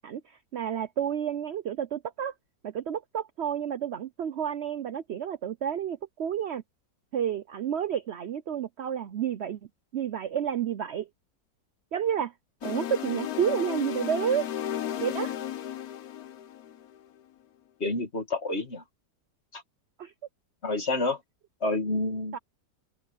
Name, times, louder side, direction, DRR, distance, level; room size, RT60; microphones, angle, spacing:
voice 1, 0.0-2.3 2.6-6.6 7.1-9.6 9.9-11.1 11.9-12.3 12.6-14.5 15.0-15.4 20.0-20.1 22.3-22.4, right 9 dB, 65° right, 0.6 m, -30 dB
sound 1, 12.6-17.0, left 11 dB, 65° left, 1.2 m, -34 dB
voice 2, 17.8-18.8 19.5-19.6 20.6-21.2 21.6-22.4, left 2 dB, 35° left, 2.5 m, -29 dB
open air
omnidirectional pair, 1.9 m